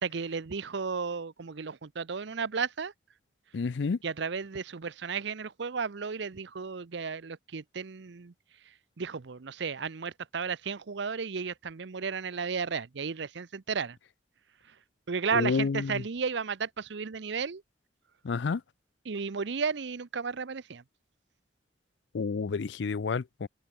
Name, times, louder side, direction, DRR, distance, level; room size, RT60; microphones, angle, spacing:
voice 1, 0.0-2.9 4.0-8.3 9.0-14.0 15.1-17.6 19.0-20.8, right 5 dB, 70° right, 0.6 m, -33 dB
voice 2, 3.5-4.0 15.3-16.0 18.2-18.6 22.1-23.5, left 4 dB, 70° left, 0.5 m, -29 dB
head